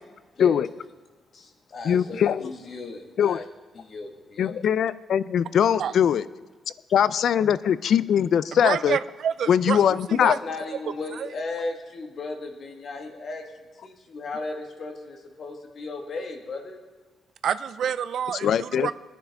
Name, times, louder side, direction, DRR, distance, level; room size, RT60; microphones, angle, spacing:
voice 1, 1.3-3.4 3.7-4.6 10.2-13.4 13.8-16.8, left 3 dB, 45° left, 3 dB, 1.6 m, -35 dB
voice 2, 1.8-2.5 3.2-3.4 4.4-6.2 6.9-9.0 9.5-10.4 18.4-18.9, left 8 dB, 60° left, 17 dB, 0.4 m, -21 dB
voice 3, 8.6-9.8 10.1-10.4 11.2-11.3 17.4-18.9, right 8 dB, 60° right, 13 dB, 0.3 m, -28 dB
20.5 x 9.9 x 3.5 m, 1.3 s
cardioid pair, 155°, 0 cm